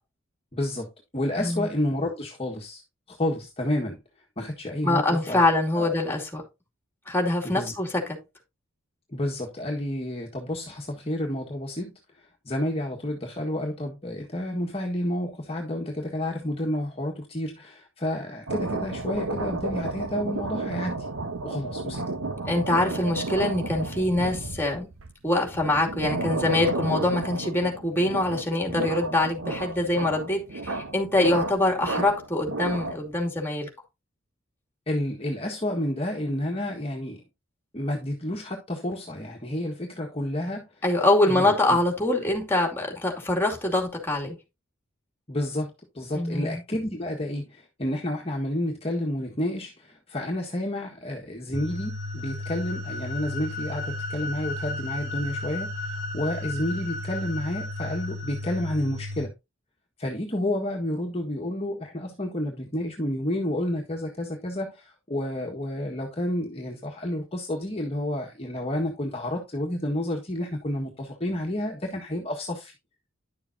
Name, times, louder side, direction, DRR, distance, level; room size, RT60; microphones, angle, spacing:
voice 1, 0.5-0.9 1.1-2.8 3.1-4.0 4.4-5.4 5.7-5.9 7.4-7.7 9.1-21.1 21.4-22.0 34.9-37.2 37.7-40.8 41.3-41.8 45.3-59.3 60.0-72.7, left 1 dB, 30° left, 1.6 m, -30 dB
voice 2, 4.8-6.5 7.1-8.2 22.5-24.9 25.2-33.7 40.8-44.4 46.1-46.6, left 2 dB, 10° left, 2.5 m, -24 dB
sound 1, 18.5-33.2, right 3 dB, 85° right, 0.9 m, -32 dB
sound 2, 51.5-59.3, left 2 dB, 50° right, 4.6 m, -33 dB
11.0 x 7.0 x 2.7 m
head